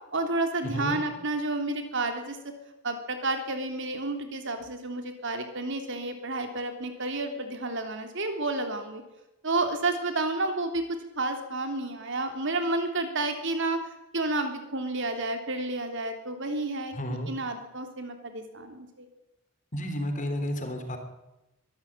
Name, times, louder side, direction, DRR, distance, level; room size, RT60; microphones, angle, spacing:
voice 1, 0.1-2.4 2.8-9.0 9.4-10.8 11.2-13.8 14.1-16.9 17.3-19.1, right 2 dB, 55° right, 6 dB, 3.2 m, -30 dB
voice 2, 0.6-1.0 16.9-17.3 19.7-21.0, equal, 35° left, 6 dB, 3.6 m, -32 dB
23.0 x 13.0 x 8.9 m, 0.93 s
head